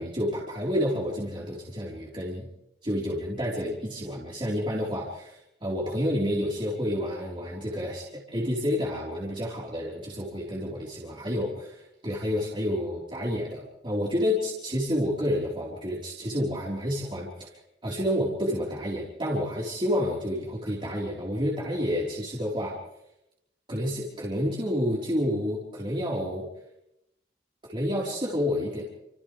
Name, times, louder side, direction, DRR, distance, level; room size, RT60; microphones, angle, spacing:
voice 1, 0.0-2.5 2.8-17.5 17.8-22.8 23.7-26.5 27.6-28.9, equal, 30° right, -5 dB, 4.0 m, -29 dB
30.0 x 27.5 x 3.4 m, 0.85 s
head